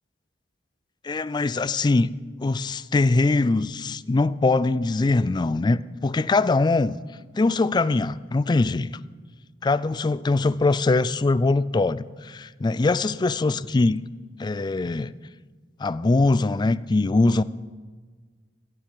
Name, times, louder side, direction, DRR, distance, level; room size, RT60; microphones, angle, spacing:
voice 1, 1.0-2.1 2.4-6.9 7.3-8.9 9.6-14.1 14.4-15.1 15.8-17.4, left 3 dB, 25° left, 0.3 m, -22 dB
16.0 x 7.4 x 7.8 m
head